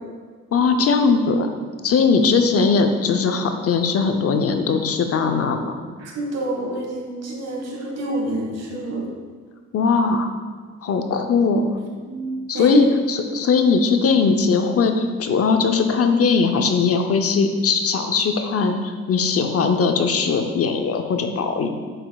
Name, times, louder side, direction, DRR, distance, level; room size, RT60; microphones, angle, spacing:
voice 1, 0.5-1.5 1.8-5.7 9.7-10.3 10.8-11.8 12.5-21.7, left 5 dB, 50° left, 6 dB, 0.6 m, -19 dB
voice 2, 6.0-9.1 12.0-12.3 12.5-12.8, right 2 dB, 60° right, 0 dB, 1.6 m, -27 dB
7.7 x 6.3 x 2.3 m, 1.6 s
cardioid pair, 90°, 30 cm